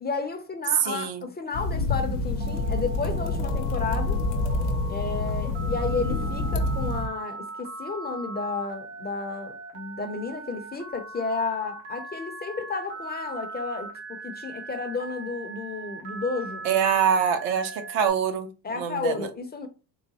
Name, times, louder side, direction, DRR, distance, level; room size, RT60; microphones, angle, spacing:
voice 1, 0.0-4.2 4.9-16.6 18.6-19.7, left 4 dB, 20° left, 0.5 m, -32 dB
voice 2, 0.8-1.3 16.6-18.5 18.8-19.3, right 7 dB, 65° right, 0.7 m, -24 dB
sound 1, 1.5-7.1, left 2 dB, 85° left, 0.7 m, -27 dB
Telephone, 2.4-18.1, right 2 dB, 85° right, 1.2 m, -40 dB
3.8 x 2.1 x 2.8 m
supercardioid pair, 75°, 46 cm